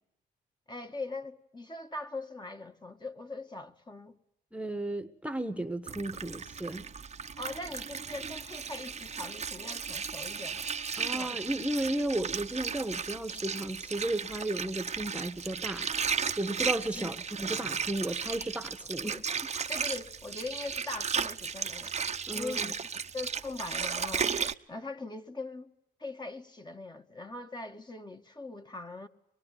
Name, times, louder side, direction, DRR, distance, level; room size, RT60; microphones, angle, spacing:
voice 1, 0.7-4.2 7.4-10.7 11.1-11.4 16.9-17.2 19.7-21.9 22.3-22.8 23.1-24.3 24.7-25.7 26.0-29.1, left 2 dB, 20° left, 1.9 m, -41 dB
voice 2, 4.5-6.8 11.0-15.9 16.4-19.3 22.3-22.7, right 1 dB, 5° right, 1.5 m, -34 dB
Water, 5.9-24.5, right 6 dB, 35° right, 1.0 m, -35 dB
24.5 x 22.0 x 9.5 m
cardioid pair, 90°, 20 cm